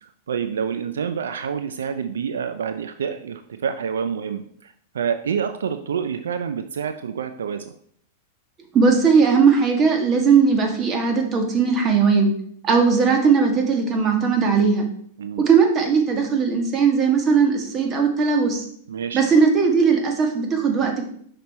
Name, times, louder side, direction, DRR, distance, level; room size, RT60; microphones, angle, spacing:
voice 1, 0.0-7.7 15.2-15.4 18.9-19.2, right 7 dB, 85° right, 9 dB, 0.5 m, -28 dB
voice 2, 8.7-12.3 12.6-14.8 15.5-18.6 19.1-21.1, right 5 dB, 30° right, 3 dB, 1.7 m, -18 dB
6.0 x 5.1 x 4.2 m, 0.64 s
hypercardioid pair, 115°, 0 cm